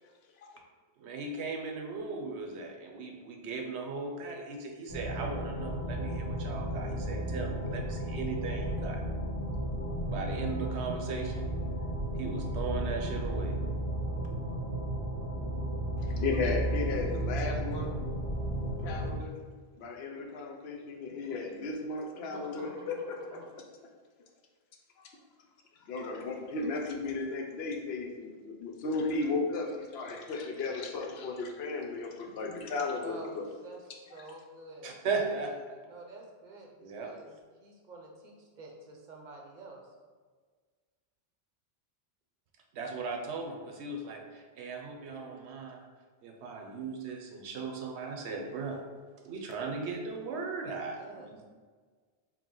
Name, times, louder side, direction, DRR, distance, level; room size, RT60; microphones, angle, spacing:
voice 1, 1.0-9.0 10.1-11.5 12.2-13.6 34.8-35.8 36.8-37.1 42.7-45.8 46.2-48.8 49.2-51.4, right 4 dB, 90° right, 2 dB, 0.9 m, -37 dB
sound 1, 4.9-19.1, right 1 dB, 35° left, 1.4 m, -34 dB
voice 2, 16.2-17.9 18.8-19.4 19.8-23.6 25.8-33.4, left 3 dB, 70° left, 1 dB, 0.8 m, -35 dB
voice 3, 22.1-23.5 33.0-33.8 34.1-35.0 35.9-37.3 37.6-39.8 50.8-51.3, right 2 dB, 50° right, 0 dB, 0.7 m, -49 dB
4.5 x 2.1 x 3.8 m, 1.5 s
omnidirectional pair, 1.1 m